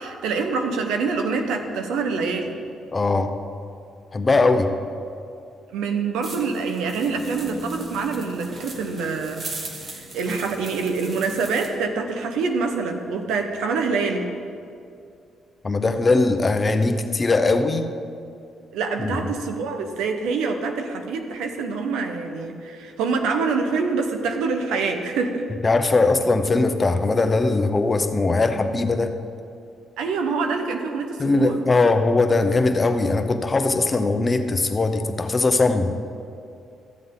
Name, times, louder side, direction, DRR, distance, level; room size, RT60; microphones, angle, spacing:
voice 1, 0.0-2.6 5.7-9.4 9.9-14.3 18.7-25.4 30.0-31.6, right 4 dB, 90° right, 5 dB, 0.9 m, -25 dB
voice 2, 2.9-3.3 4.1-4.7 15.6-17.9 19.0-19.2 25.6-29.2 31.2-35.9, left 3 dB, 30° left, 7 dB, 0.7 m, -20 dB
sound 1, 6.2-11.7, right 2 dB, 45° right, 1.5 m, -38 dB
14.0 x 7.8 x 3.8 m, 2.5 s
cardioid pair, 90°, 0 cm